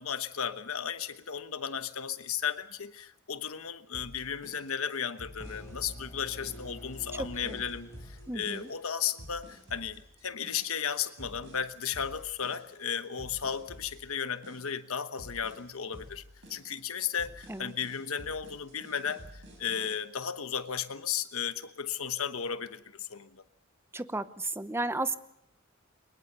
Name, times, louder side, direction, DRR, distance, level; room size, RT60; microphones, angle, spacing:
voice 1, 0.0-16.2 16.5-23.4, left 8 dB, 80° left, 1.1 m, -35 dB
sound 1, 3.9-19.9, equal, 60° right, 7.8 m, -50 dB
sound 2, 5.4-9.3, equal, 15° left, 3.6 m, -47 dB
voice 2, 7.1-7.6 8.3-8.7 17.5-17.7 23.9-25.2, right 2 dB, 10° right, 0.8 m, -34 dB
23.0 x 21.0 x 6.9 m
head